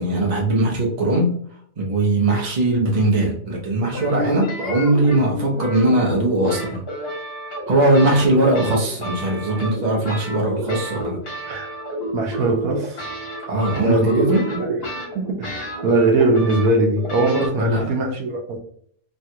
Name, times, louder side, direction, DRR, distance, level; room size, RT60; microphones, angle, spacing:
voice 1, 0.0-1.4 1.8-6.8 7.7-11.2 13.5-14.5 17.6-17.8, right 1 dB, 35° right, -1 dB, 0.8 m, -20 dB
sound 1, 3.9-17.5, equal, 40° left, 1.6 m, -31 dB
voice 2, 12.1-13.0 13.8-18.6, right 2 dB, 75° right, 1 dB, 1.1 m, -21 dB
3.2 x 2.4 x 2.8 m, 0.62 s
omnidirectional pair, 1.5 m